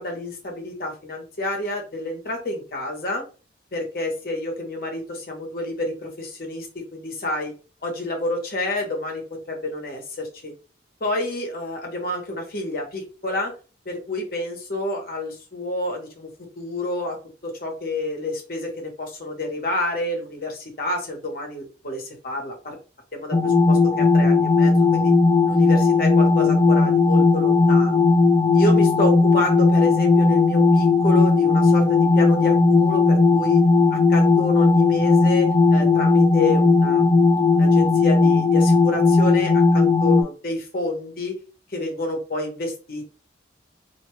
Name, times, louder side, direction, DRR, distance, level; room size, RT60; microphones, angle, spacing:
voice 1, 0.0-3.3 3.7-7.5 7.8-10.5 11.0-13.5 13.8-16.3 16.6-17.2 17.4-22.8 23.1-25.1 25.5-28.0 28.5-33.6 33.9-37.2 37.5-41.4 41.7-43.1, left 1 dB, 50° left, 1 dB, 0.9 m, -29 dB
sound 1, 23.3-40.2, left 4 dB, 30° left, 0.4 m, -17 dB
2.5 x 2.2 x 3.0 m, 0.35 s
head